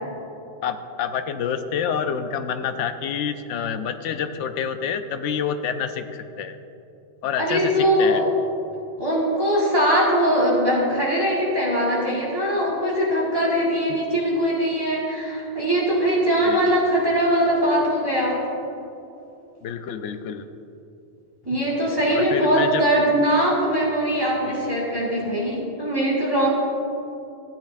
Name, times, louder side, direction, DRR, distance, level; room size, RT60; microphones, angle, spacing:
voice 1, 0.6-6.6 7.2-8.2 13.9-14.0 16.4-16.8 19.6-20.5 21.5-21.6 22.1-22.8 24.4-24.7, left 7 dB, 80° left, 9 dB, 0.9 m, -28 dB
voice 2, 7.4-8.2 9.0-18.4 21.5-26.5, equal, 20° right, -6 dB, 1.8 m, -21 dB
14.0 x 9.0 x 2.6 m, 2.9 s
omnidirectional pair, 1.2 m